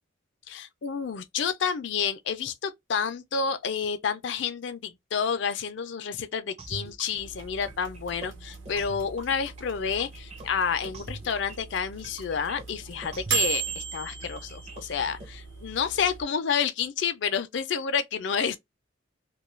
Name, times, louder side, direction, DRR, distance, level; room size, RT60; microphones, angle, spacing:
voice 1, 0.5-18.6, left 6 dB, 65° left, 0.4 m, -29 dB
sound 1, 6.6-15.3, right 2 dB, 30° right, 0.5 m, -44 dB
sound 2, 7.2-16.2, right 7 dB, 70° right, 0.9 m, -37 dB
2.3 x 2.2 x 3.0 m
head